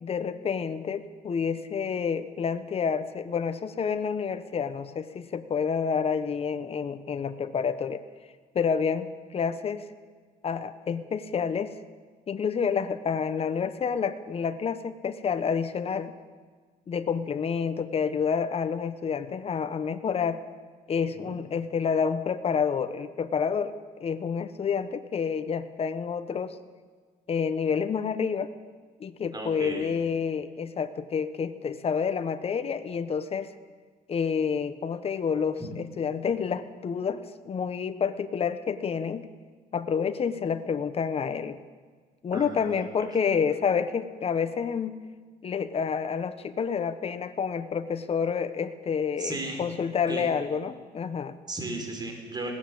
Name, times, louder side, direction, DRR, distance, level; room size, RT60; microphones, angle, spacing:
voice 1, 0.0-8.0 8.5-9.9 10.4-11.7 12.3-16.1 16.9-20.4 20.9-26.6 27.3-28.5 29.0-33.5 34.1-39.2 39.7-41.6 42.2-45.0 45.4-51.4, left 6 dB, 35° left, 11 dB, 1.2 m, -29 dB
voice 2, 29.3-29.9 35.6-35.7 42.3-42.9 49.2-49.6 50.1-50.2 51.5-52.5, right 2 dB, 25° right, 3 dB, 4.8 m, -35 dB
20.0 x 17.0 x 7.8 m, 1.5 s
cardioid pair, 110°, 17 cm